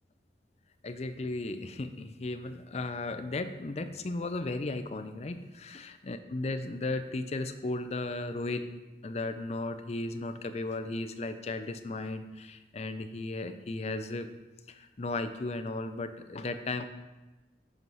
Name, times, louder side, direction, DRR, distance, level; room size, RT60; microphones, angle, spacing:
voice 1, 0.8-8.7 9.0-14.3 14.7-16.8, left 2 dB, 40° left, 9 dB, 0.5 m, -35 dB
8.1 x 4.6 x 5.4 m, 1.1 s
head